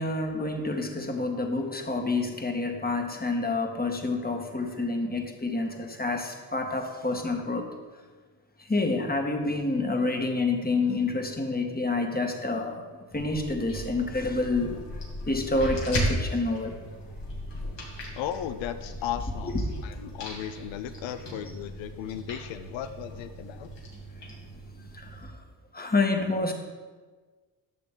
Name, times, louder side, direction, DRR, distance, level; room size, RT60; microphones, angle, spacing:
voice 1, 0.0-7.7 8.7-12.8 13.1-14.8 15.3-16.8 24.9-25.3 25.7-26.5, left 3 dB, 20° left, 3 dB, 1.7 m, -28 dB
sound 1, 13.1-25.2, equal, 65° left, 2.7 m, -37 dB
voice 2, 18.2-19.6 19.8-23.7, left 10 dB, 85° left, 10 dB, 0.6 m, -35 dB
11.5 x 6.6 x 3.9 m, 1.4 s
supercardioid pair, 55°, 45 cm